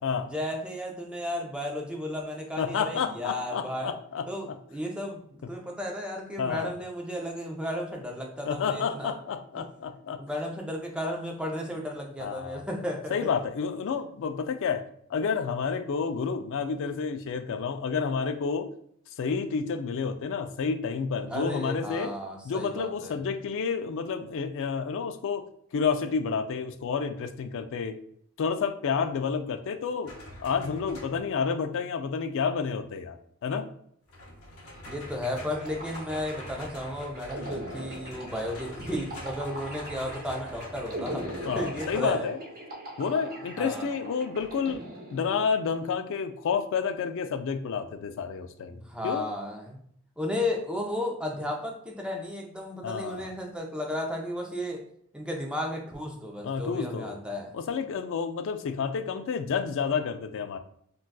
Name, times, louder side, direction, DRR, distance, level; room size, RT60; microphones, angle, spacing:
voice 1, 0.2-3.9 4.3-9.2 9.6-9.7 10.2-13.3 21.3-23.2 34.9-41.2 41.5-42.3 43.6-43.9 48.7-49.8 50.2-54.8 55.1-57.5, left 1 dB, 5° right, 0 dB, 0.5 m, -34 dB
voice 2, 2.6-4.2 6.4-6.7 8.4-10.2 12.2-12.6 13.1-14.8 15.1-18.7 19.2-22.1 22.4-25.4 25.7-28.0 28.4-30.1 30.4-33.2 33.4-33.7 41.5-42.4 43.0-44.8 45.1-48.8 49.0-49.3 52.8-53.3 56.4-57.2 57.5-60.6, left 6 dB, 60° left, 8 dB, 0.3 m, -30 dB
sound 1, 30.0-31.4 34.1-42.2 44.4-44.8, left 1 dB, 80° left, 0.8 m, -45 dB
sound 2, 35.2-45.7, right 1 dB, 40° right, 0.8 m, -41 dB
3.8 x 2.3 x 2.2 m, 0.66 s
head